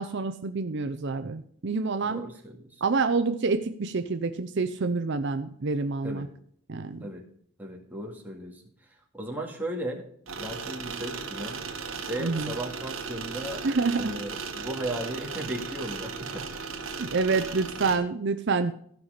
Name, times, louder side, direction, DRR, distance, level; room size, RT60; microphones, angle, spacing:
voice 1, 0.0-2.3 2.8-6.3 6.7-7.1 12.2-12.5 13.6-14.2 17.0-18.7, right 4 dB, 50° right, 9 dB, 0.6 m, -27 dB
voice 2, 2.1-2.8 6.0-6.3 7.0-7.3 7.6-8.6 8.9-10.0 10.4-11.6 12.1-13.7 14.0-16.5, right 1 dB, 10° right, -1 dB, 2.1 m, -36 dB
sound 1, 10.3-18.0, right 5 dB, 65° right, 1.9 m, -36 dB
15.0 x 5.8 x 5.0 m, 0.64 s
head